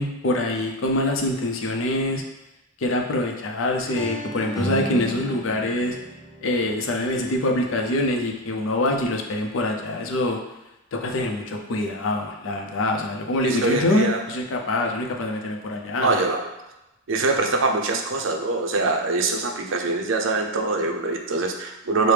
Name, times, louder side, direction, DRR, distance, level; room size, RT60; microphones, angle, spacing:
voice 1, 0.0-2.2 2.8-6.0 6.4-10.4 10.9-16.1, left 1 dB, 80° left, 2 dB, 0.5 m, -25 dB
sound 1, 3.8-9.4, equal, 20° left, 0.7 m, -36 dB
voice 2, 13.4-14.2 16.0-16.4 17.1-22.1, right 3 dB, 75° right, 3 dB, 0.5 m, -23 dB
4.8 x 2.1 x 3.2 m, 0.95 s
head